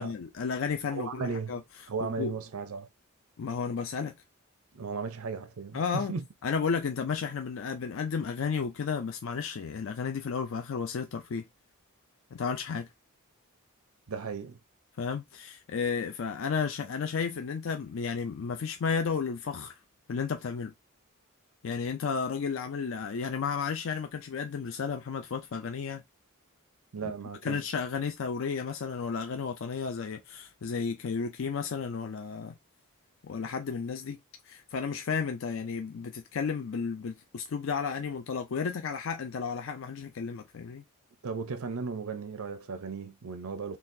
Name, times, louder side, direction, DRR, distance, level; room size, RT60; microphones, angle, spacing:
voice 1, 0.0-1.6 2.2-2.3 3.4-4.1 5.7-6.1 6.4-11.4 12.3-12.9 15.0-19.7 20.1-20.7 21.6-26.0 27.0-27.1 27.4-32.5 33.2-34.2 34.5-40.8, left 5 dB, 65° left, 0.4 m, -33 dB
voice 2, 0.9-1.6 1.9-2.9 4.7-6.3 14.1-14.6 26.9-27.6 41.2-43.8, right 5 dB, 90° right, 0.6 m, -36 dB
3.9 x 2.4 x 2.6 m
head